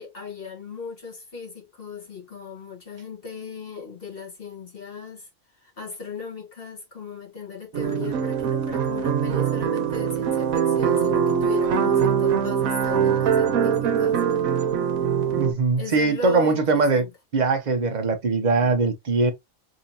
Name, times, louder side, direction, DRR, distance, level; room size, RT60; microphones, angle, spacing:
voice 1, 0.0-5.3 5.5-14.4 15.8-17.1, left 5 dB, 45° left, 1.4 m, -37 dB
sound 1, 7.7-15.5, right 8 dB, 75° right, 1.2 m, -22 dB
voice 2, 15.4-17.0 17.3-19.3, right 4 dB, 40° right, 0.7 m, -21 dB
3.6 x 2.8 x 2.7 m
omnidirectional pair, 1.4 m